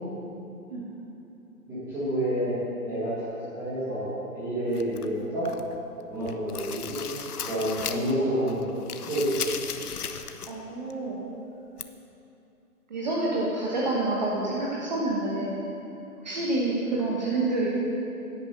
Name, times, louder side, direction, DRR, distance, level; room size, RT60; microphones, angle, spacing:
voice 1, 1.7-5.5 6.1-7.1 7.4-9.3, right 1 dB, 5° right, -13 dB, 1.4 m, -29 dB
sound 1, 4.7-5.8 6.1-8.2 8.5-10.6 10.9-11.0 11.8-11.9, left 7 dB, 75° left, 0.9 m, -36 dB
voice 2, 10.5-11.2 12.9-15.6 16.2-17.7, right 2 dB, 30° right, -5 dB, 1.2 m, -28 dB
9.9 x 9.8 x 6.7 m, 2.8 s
hypercardioid pair, 170°, 46 cm